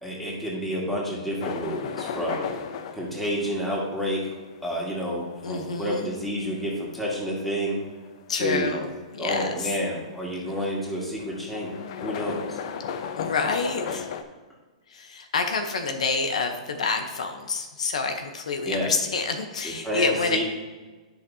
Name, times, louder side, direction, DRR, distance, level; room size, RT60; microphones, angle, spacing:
voice 1, 0.0-2.5 2.9-4.3 4.6-7.8 8.4-8.7 9.2-12.6 18.6-18.9 19.6-20.4, equal, 5° left, -5 dB, 2.2 m, -29 dB
sound 1, 1.4-14.2, left 7 dB, 55° left, 0.7 m, -36 dB
voice 2, 5.4-6.1 8.3-8.9 9.1-9.7 13.2-14.1 14.9-20.4, left 4 dB, 85° left, 5 dB, 0.9 m, -28 dB
10.5 x 5.8 x 2.8 m, 1.3 s
hypercardioid pair, 130°, 4 cm